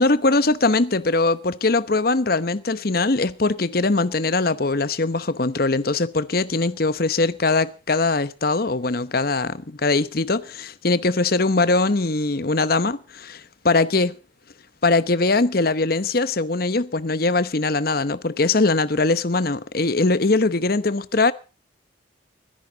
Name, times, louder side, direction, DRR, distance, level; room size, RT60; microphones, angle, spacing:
voice 1, 0.0-14.1 14.8-21.3, left 3 dB, 50° left, 0.9 m, -21 dB
24.5 x 11.0 x 3.9 m
head